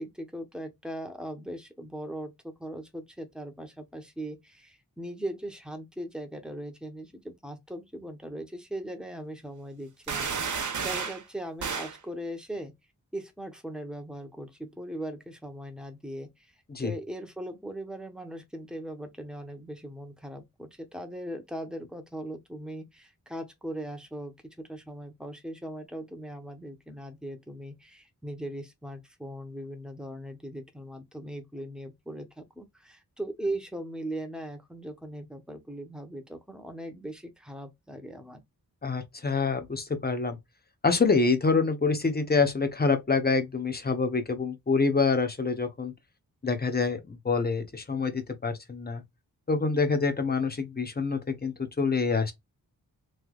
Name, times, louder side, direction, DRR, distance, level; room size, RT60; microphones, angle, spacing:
voice 1, 0.0-12.7 13.1-16.5 16.8-38.4, right 1 dB, ahead, 0.9 m, -39 dB
sound 1, 10.1-11.2 11.6-12.0, right 5 dB, 50° right, 0.8 m, -31 dB
voice 2, 38.8-40.4 40.8-45.9 46.4-49.0 49.5-52.3, left 4 dB, 25° left, 0.9 m, -26 dB
3.3 x 2.9 x 2.3 m
wide cardioid pair, 100°, 37 cm